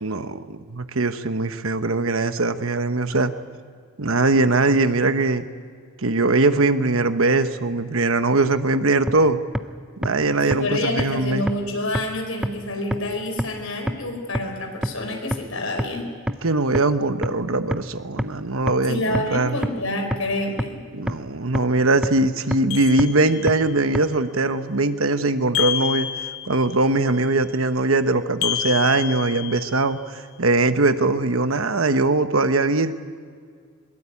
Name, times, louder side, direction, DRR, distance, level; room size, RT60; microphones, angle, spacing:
voice 1, 0.0-3.3 4.0-5.5 6.0-9.4 10.0-11.5 16.4-19.6 20.9-26.1 26.4-32.9, right 2 dB, 70° right, 9 dB, 1.1 m, -21 dB
sound 1, 9.1-9.2 9.5-9.6 10.0-10.1 10.5-10.6 11.0-11.1 11.5-11.6 11.9-12.0 12.4-12.5 12.9-13.0 13.4-13.5 13.9-14.0 14.3-14.4 14.8-14.9 15.3-15.4 15.8-15.9 16.3-16.4 16.7-16.8 17.2-17.3 17.7-17.8 18.2-18.3 18.7-18.8 19.1-19.2 19.6-19.7 20.1-20.2 20.6-20.7 21.1-21.2 21.5-21.6 22.0-22.1 22.5-22.6 23.0-23.1 23.5-23.6 23.9-24.0, equal, 5° right, 0.7 m, -23 dB
voice 2, 10.4-16.1 18.9-20.8, left 1 dB, 70° left, 4 dB, 4.8 m, -27 dB
sound 2, 22.7-23.7 25.5-26.8 28.4-29.9, left 12 dB, 90° left, 1.3 m, -28 dB
22.0 x 22.0 x 8.5 m, 2.1 s
head